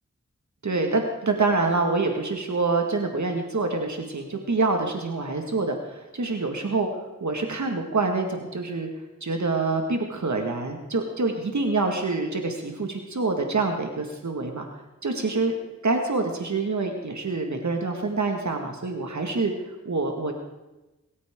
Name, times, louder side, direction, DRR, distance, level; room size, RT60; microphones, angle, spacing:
voice 1, 0.6-6.9 7.2-8.9 9.2-14.7 15.0-15.5 15.8-19.5 19.9-20.3, right 3 dB, 65° right, 3 dB, 1.9 m, -26 dB
22.5 x 14.0 x 3.8 m, 1.0 s
cardioid pair, 50°, 30 cm